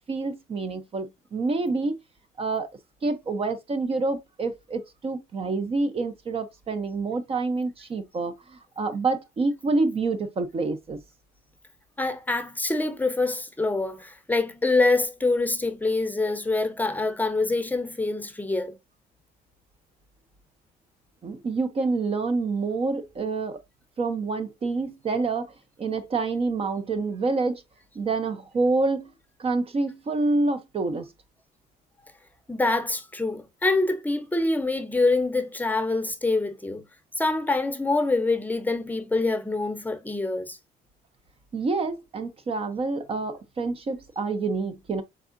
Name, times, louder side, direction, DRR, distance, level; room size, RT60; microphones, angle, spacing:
voice 1, 0.1-2.0 2.4-2.7 3.0-11.0 21.2-23.6 24.0-25.5 25.8-27.6 27.9-29.1 29.4-31.1 41.5-45.0, right 3 dB, 35° right, 0.6 m, -27 dB
voice 2, 12.0-18.8 32.5-36.8 37.2-40.6, left 3 dB, 10° left, 0.7 m, -25 dB
4.7 x 3.5 x 2.5 m
cardioid pair, 110°, 17 cm